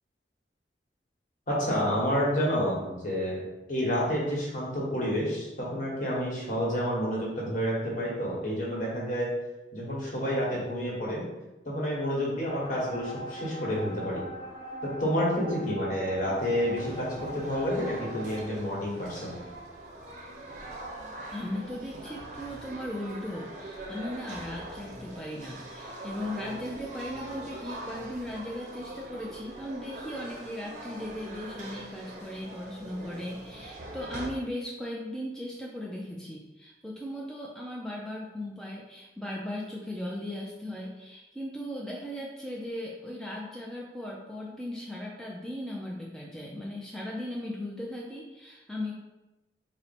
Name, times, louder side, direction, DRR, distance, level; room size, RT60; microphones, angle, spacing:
voice 1, 1.5-9.3 9.7-11.2 11.6-14.2 15.0-19.4, equal, 45° left, -4 dB, 1.2 m, -29 dB
sound 1, 12.5-18.4, equal, 30° left, 0.7 m, -41 dB
sound 2, 16.4-34.3, right 1 dB, 45° right, 0.6 m, -42 dB
voice 2, 21.3-48.9, left 1 dB, 5° left, -4 dB, 0.3 m, -37 dB
4.2 x 2.1 x 4.1 m, 1.0 s
head